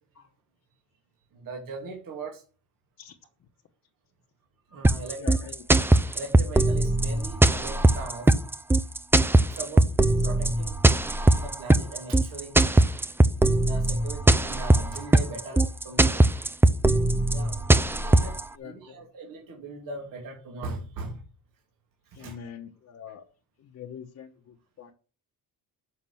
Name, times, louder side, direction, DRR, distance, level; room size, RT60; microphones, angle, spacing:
voice 1, 1.3-2.4 4.7-5.5 5.9-8.3 9.4-9.9 10.2-10.7 11.4-12.6 13.6-16.2 17.3-18.3 18.6-21.2 22.2-22.5, right 3 dB, 70° right, 0 dB, 2.6 m, -39 dB
sound 1, 4.8-18.4, right 2 dB, 5° right, 0.4 m, -20 dB
voice 2, 5.2-5.7 17.7-17.8 18.1-18.2 18.5-19.1 22.1-23.2 23.6-24.9, left 8 dB, 50° left, 1 dB, 1.1 m, -44 dB
7.2 x 5.9 x 7.7 m, 0.36 s
cardioid pair, 155°, 35 cm